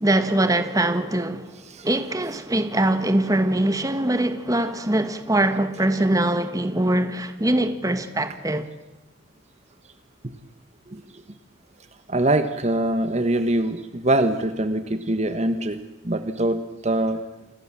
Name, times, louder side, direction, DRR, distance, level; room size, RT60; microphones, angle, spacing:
voice 1, 0.0-1.5 1.8-8.7, right 1 dB, 15° right, 1.5 m, -22 dB
voice 2, 12.1-17.2, right 1 dB, 35° right, 1.3 m, -23 dB
28.5 x 21.5 x 7.5 m
head